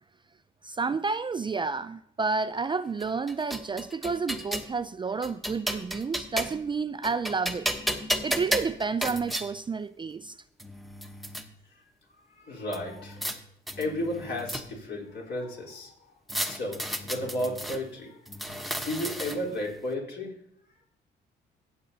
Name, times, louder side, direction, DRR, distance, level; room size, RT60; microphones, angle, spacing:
voice 1, 0.6-7.7 8.2-10.4, right 4 dB, 25° right, 0.3 m, -30 dB
sound 1, 3.0-4.7 5.2-6.7 7.0-9.5 10.2-10.3 10.6-11.4 12.7-13.4 13.7-14.9 16.3-17.8 18.3-19.6, equal, ahead, 1.0 m, -33 dB
voice 2, 12.3-13.2 13.8-15.9 16.5-18.2 18.8-20.3, left 1 dB, 60° left, 3.8 m, -33 dB
15.5 x 7.9 x 2.8 m
cardioid pair, 90°, 20 cm